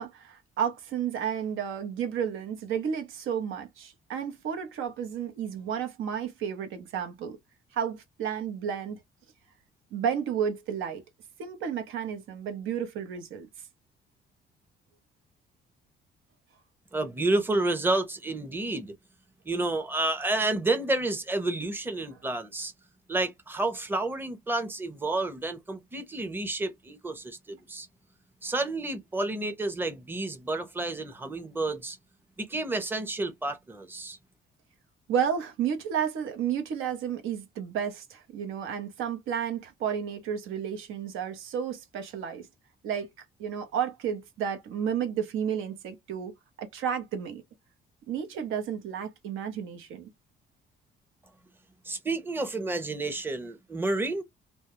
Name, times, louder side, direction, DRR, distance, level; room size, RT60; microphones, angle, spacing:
voice 1, 0.0-7.4 7.7-9.0 9.9-11.0 11.4-13.5 35.1-42.5 42.8-43.1 43.4-46.3 46.6-47.4 48.1-50.1, right 8 dB, 85° right, 0.7 m, -32 dB
voice 2, 16.9-18.9 19.5-22.7 23.1-27.9 28.4-32.0 32.4-34.2 51.8-54.2, right 2 dB, 10° right, 0.6 m, -30 dB
2.2 x 2.0 x 2.9 m
cardioid pair, 90°, 20 cm